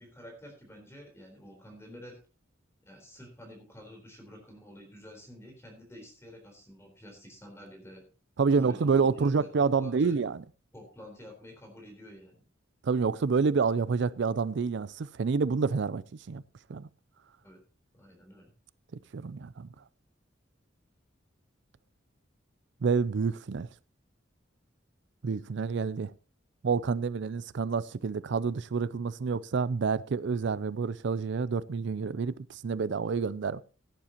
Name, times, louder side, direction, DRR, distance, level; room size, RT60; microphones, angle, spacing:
voice 1, 0.0-2.2 2.8-8.0 8.5-10.1 10.7-12.4 17.4-17.6 17.9-18.5, equal, 15° left, 3.9 m, -49 dB
voice 2, 8.4-10.4 12.8-16.0 16.3-16.4 16.7-16.8 19.1-19.7 22.8-23.7 25.2-26.1 26.6-33.6, right 5 dB, 65° right, 0.4 m, -28 dB
16.5 x 9.9 x 2.9 m
head